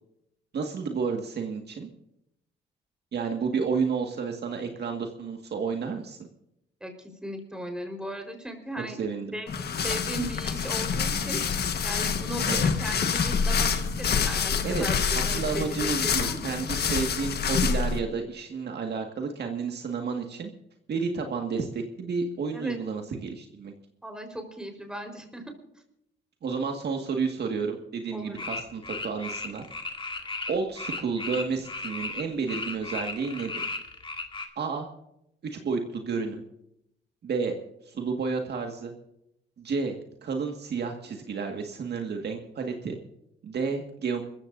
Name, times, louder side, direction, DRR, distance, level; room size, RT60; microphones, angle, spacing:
voice 1, 0.5-1.9 3.1-6.2 9.0-9.3 12.5-12.7 14.6-14.9 15.2-20.5 20.9-23.7 26.4-29.7 30.5-33.6 34.6-34.9 35.5-36.4 37.2-37.5 37.9-38.9 39.6-40.0 40.2-43.0 43.4-44.2, right 5 dB, 55° right, 3 dB, 2.0 m, -31 dB
voice 2, 6.8-9.0 9.3-9.5 9.8-11.4 11.8-16.4 22.5-22.8 24.0-25.4 28.1-28.4, right 1 dB, 5° right, 4 dB, 4.5 m, -37 dB
sound 1, 9.5-18.0, left 6 dB, 55° left, 1.5 m, -27 dB
sound 2, 28.3-32.2 32.5-34.5, left 3 dB, 25° left, 2.3 m, -35 dB
26.0 x 14.5 x 2.7 m, 0.80 s
cardioid pair, 90°, 20 cm